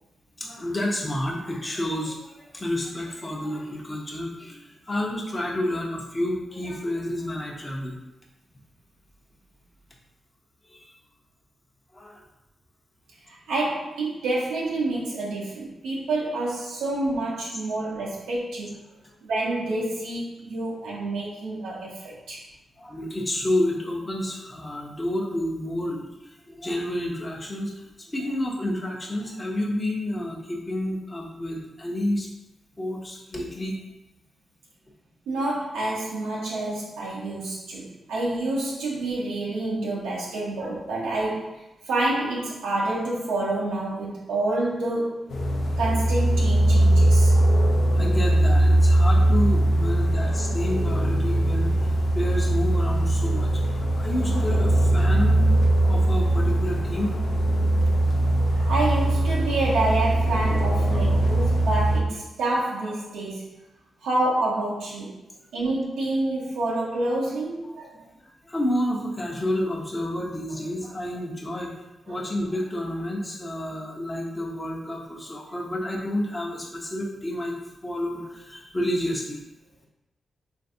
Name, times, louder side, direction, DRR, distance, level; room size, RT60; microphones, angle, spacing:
voice 1, 0.4-8.0 10.7-10.9 11.9-12.2 19.0-19.1 22.8-32.3 32.8-33.8 40.6-40.7 48.0-53.5 54.0-55.5 55.8-57.1 67.9-77.5 77.8-79.4, left 1 dB, 25° left, -2 dB, 0.7 m, -30 dB
voice 2, 13.3-18.7 19.2-22.4 35.3-45.3 45.8-47.4 58.3-63.5 64.0-65.2 65.5-67.9 72.1-72.2, right 2 dB, 90° right, -5 dB, 0.6 m, -28 dB
sound 1, 45.3-62.0, right 1 dB, 70° left, 0.4 m, -21 dB
3.2 x 2.5 x 2.6 m, 0.94 s
supercardioid pair, 50°, 0 cm